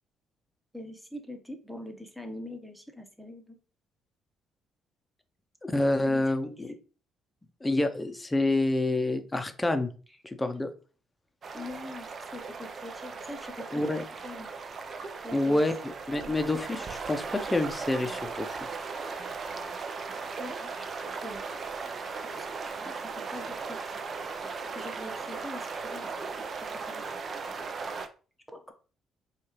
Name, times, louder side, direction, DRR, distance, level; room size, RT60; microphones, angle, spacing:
voice 1, 0.7-3.6 6.0-6.5 11.5-14.5 15.2-15.6 16.1-16.4 20.4-20.9 21.1-23.9 24.7-26.1 26.4-27.0 28.5-28.7, left 1 dB, ahead, 5 dB, 0.9 m, -44 dB
voice 2, 5.6-6.7 7.6-9.9 10.2-10.7 13.7-14.0 15.3-18.6, left 2 dB, 15° left, 8 dB, 0.6 m, -28 dB
sound 1, 11.4-28.1, right 4 dB, 50° right, 0.5 m, -37 dB
4.4 x 2.5 x 3.0 m, 0.37 s
supercardioid pair, 60°, 0 cm